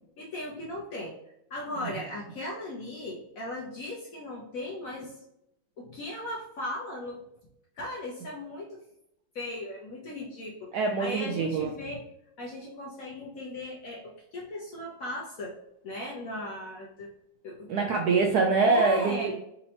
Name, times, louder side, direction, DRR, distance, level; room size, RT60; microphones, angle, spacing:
voice 1, 0.2-1.1 1.5-5.1 5.8-7.2 7.8-8.8 9.3-12.0 12.4-15.5 15.8-17.1 17.4-17.7 18.6-19.3, left 1 dB, 65° left, -2 dB, 0.9 m, -37 dB
voice 2, 10.7-11.7 17.7-19.4, right 4 dB, 75° right, 1 dB, 0.9 m, -24 dB
4.2 x 2.9 x 2.7 m, 0.81 s
omnidirectional pair, 2.1 m